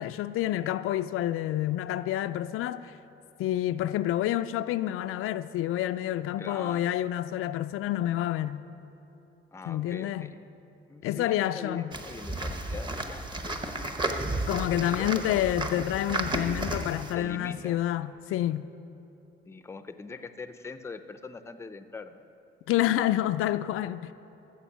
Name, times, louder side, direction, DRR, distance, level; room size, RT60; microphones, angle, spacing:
voice 1, 0.0-2.9 3.4-8.6 9.7-10.3 11.0-11.9 14.5-18.6 22.7-24.1, left 13 dB, 85° left, 0.4 m, -28 dB
voice 2, 6.4-6.9 9.5-10.4 10.9-13.6 14.3-14.4 14.7-15.5 17.1-17.8 19.5-22.2, left 4 dB, 15° left, 0.5 m, -42 dB
sound 1, 11.9-17.1, right 1 dB, 20° right, 0.9 m, -33 dB
14.5 x 7.0 x 7.2 m
cardioid pair, 130°, 21 cm